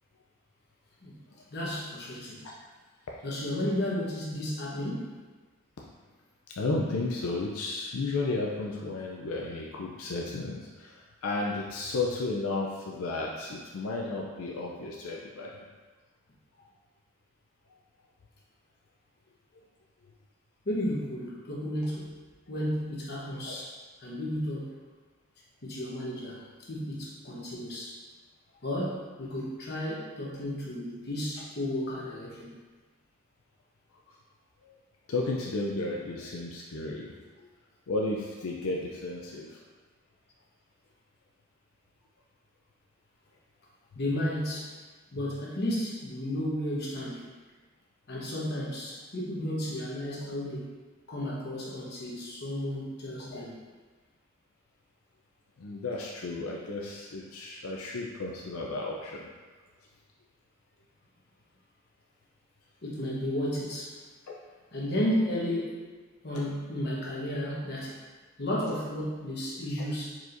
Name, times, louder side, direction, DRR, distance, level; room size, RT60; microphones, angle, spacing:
voice 1, 1.5-2.5 3.2-5.2 20.6-22.2 22.5-24.8 25.6-28.0 28.6-32.6 43.9-44.8 45.1-47.3 48.1-50.8 51.1-53.6 62.8-64.0 64.7-65.8 66.2-68.0 68.4-70.2, left 1 dB, 50° left, -5 dB, 1.0 m, -33 dB
voice 2, 6.5-15.7 23.4-23.5 34.6-34.8 35.1-37.1 37.4-37.5 37.9-39.6 53.3-53.4 55.6-59.3 64.3-64.4, left 2 dB, 85° left, -2 dB, 0.5 m, -33 dB
4.7 x 4.3 x 2.6 m, 1.4 s
head